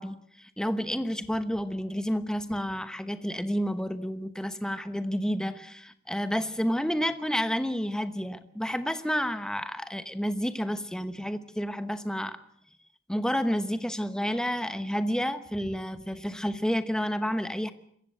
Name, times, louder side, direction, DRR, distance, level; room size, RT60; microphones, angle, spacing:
voice 1, 0.0-12.4 13.1-17.7, equal, 5° left, 11 dB, 1.1 m, -30 dB
26.0 x 15.0 x 8.0 m, 0.70 s
head